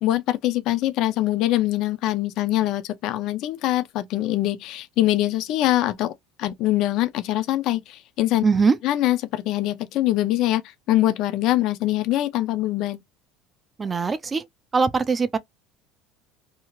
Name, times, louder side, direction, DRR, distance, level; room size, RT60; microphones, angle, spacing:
voice 1, 0.0-6.1 6.4-8.4 8.8-10.6 10.9-13.0, left 15 dB, 50° left, 0.4 m, -23 dB
voice 2, 8.4-8.8 13.8-14.4 14.7-15.4, right 4 dB, 15° right, 0.3 m, -21 dB
2.7 x 2.4 x 2.9 m
cardioid pair, 165°, 0 cm